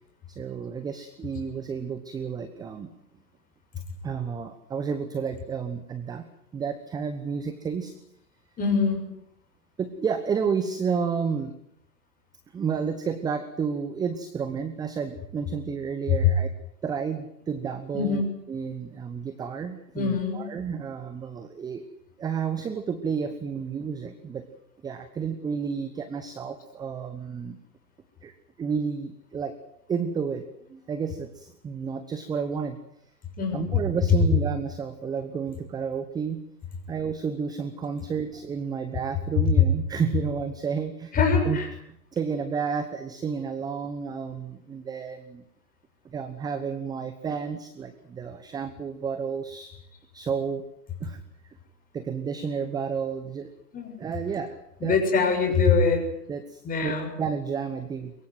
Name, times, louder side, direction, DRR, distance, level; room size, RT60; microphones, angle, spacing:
voice 1, 0.3-2.9 4.0-6.3 6.5-7.9 9.8-11.5 12.5-16.5 16.8-18.2 18.5-21.8 22.2-24.4 24.8-27.6 28.2-28.3 28.6-29.5 29.9-30.4 30.7-32.8 33.5-36.4 36.9-41.2 41.4-41.6 41.9-45.4 46.0-49.7 50.1-50.6 51.0-51.2 51.9-53.5 54.0-54.5 54.8-55.0 56.3-58.1, right 6 dB, 10° right, 11 dB, 0.9 m, -31 dB
voice 2, 8.6-9.0 17.9-18.3 19.9-20.5 33.4-33.6 41.1-41.7 53.7-54.0 54.8-56.1 56.6-57.1, left 4 dB, 15° left, 4 dB, 6.4 m, -23 dB
23.0 x 22.5 x 7.9 m, 0.74 s
figure-of-eight pair, 120°, 50 cm